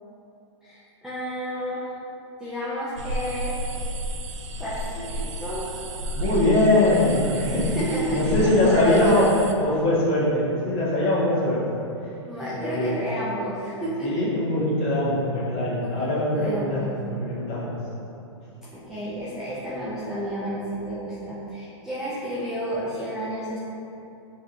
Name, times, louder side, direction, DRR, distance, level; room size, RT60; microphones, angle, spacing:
voice 1, 0.6-1.9 2.4-3.5 4.6-5.6 7.7-9.5 12.3-14.2 15.8-16.9 18.6-23.6, equal, 5° right, -11 dB, 0.4 m, -31 dB
sound 1, 3.0-9.5, right 1 dB, 80° right, 0.4 m, -32 dB
voice 2, 6.1-7.7 8.1-11.6 12.5-13.0 14.0-17.8, left 1 dB, 35° left, -8 dB, 1.2 m, -22 dB
5.0 x 2.9 x 2.5 m, 2.8 s
hypercardioid pair, 145°, 16 cm